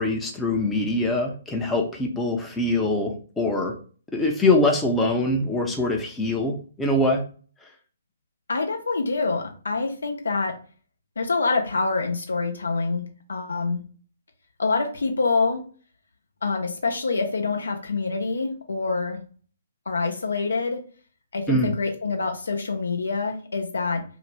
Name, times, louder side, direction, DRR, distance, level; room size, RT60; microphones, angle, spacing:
voice 1, 0.0-3.7 4.1-7.2 21.5-21.7, left 2 dB, 10° left, 0 dB, 0.5 m, -23 dB
voice 2, 8.5-10.6 11.2-13.8 14.6-15.6 16.4-19.2 19.9-20.8 21.3-24.0, left 4 dB, 75° left, 3 dB, 0.7 m, -26 dB
2.6 x 2.1 x 3.2 m, 0.40 s
figure-of-eight pair, 130°, 0 cm